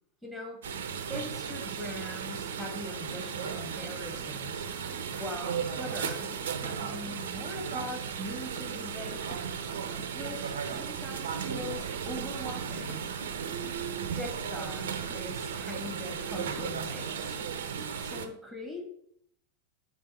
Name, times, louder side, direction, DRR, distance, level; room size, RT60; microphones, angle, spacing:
voice 1, 0.2-0.6 1.1-4.7 5.1-6.3 6.6-9.2 10.1-13.1 14.2-17.4 18.0-18.8, left 1 dB, 5° left, 0 dB, 2.6 m, -41 dB
sound 1, 0.6-18.3, right 7 dB, 65° right, 0.8 m, -35 dB
sound 2, 2.7-2.9 3.5-3.7 4.1-4.5 4.8-5.2 5.6-6.0 6.3-6.6 7.1-7.4 7.8-8.2 8.6-9.0 9.3-10.3 10.7-11.1 11.5-11.8 12.2-12.6 12.9-13.2 13.6-13.9 14.4-14.8 15.1-15.4 15.9-16.2 16.6-16.9 17.4-17.6, left 4 dB, 25° left, 1.0 m, -53 dB
7.4 x 3.7 x 5.9 m, 0.70 s
figure-of-eight pair, 90°, 0 cm